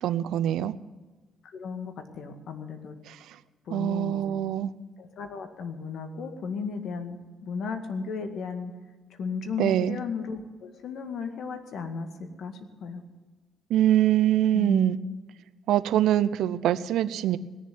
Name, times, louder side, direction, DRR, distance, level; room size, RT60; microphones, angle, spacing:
voice 1, 0.0-0.7 3.1-3.2 3.7-4.7 9.6-10.0 13.7-15.0 15.7-17.4, right 12 dB, 85° right, 14 dB, 0.6 m, -24 dB
voice 2, 1.4-2.9 3.7-4.2 5.0-7.2 7.4-8.7 9.2-12.1 12.4-12.5 12.8-13.0 14.5-14.9, left 5 dB, 70° left, 7 dB, 2.0 m, -34 dB
19.0 x 7.3 x 9.4 m, 1.3 s
cardioid pair, 90°, 0 cm